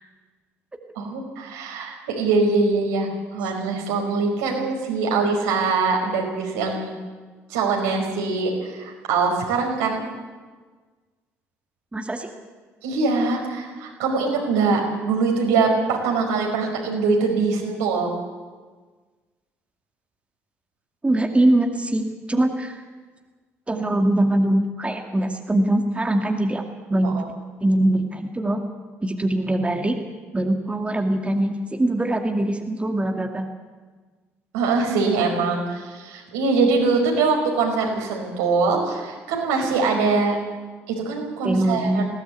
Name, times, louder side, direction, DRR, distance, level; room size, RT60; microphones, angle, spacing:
voice 1, 0.9-6.9 7.5-10.0 12.8-18.1 27.0-27.2 34.5-40.4 40.9-42.1, right 4 dB, 75° right, 1 dB, 5.2 m, -23 dB
voice 2, 11.9-12.3 21.0-22.8 23.7-26.6 26.9-27.2 27.6-28.6 29.0-30.0 30.3-33.5 41.4-42.0, right 1 dB, 15° right, 3 dB, 2.3 m, -22 dB
20.5 x 17.0 x 8.4 m, 1.4 s
figure-of-eight pair, 50°, 7 cm